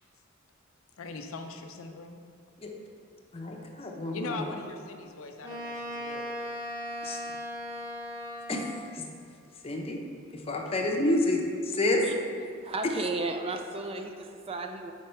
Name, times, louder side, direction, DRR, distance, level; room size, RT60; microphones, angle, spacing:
voice 1, 1.0-2.2 4.1-6.5, left 3 dB, 85° left, 5 dB, 0.5 m, -40 dB
voice 2, 3.3-4.5 7.0-7.2 8.5-8.6 8.9-9.0 9.6-10.0 10.5-12.0, left 1 dB, 30° left, 1 dB, 0.6 m, -28 dB
Wind instrument woodwind instrument, 5.4-9.0, equal, 10° right, 1.2 m, -37 dB
voice 3, 12.6-14.9, right 3 dB, 30° right, 5 dB, 0.3 m, -34 dB
4.7 x 4.4 x 5.4 m, 2.2 s
head